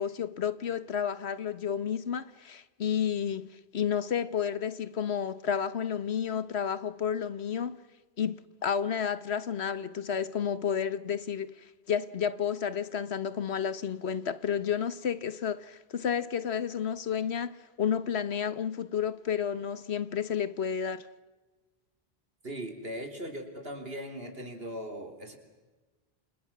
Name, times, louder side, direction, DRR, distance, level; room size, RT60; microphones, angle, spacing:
voice 1, 0.0-3.5 3.7-7.8 8.2-8.3 8.6-11.5 11.9-21.1, left 8 dB, 85° left, 1.4 m, -31 dB
voice 2, 22.4-25.4, equal, 65° right, 3.9 m, -39 dB
29.0 x 28.0 x 6.1 m
omnidirectional pair, 1.1 m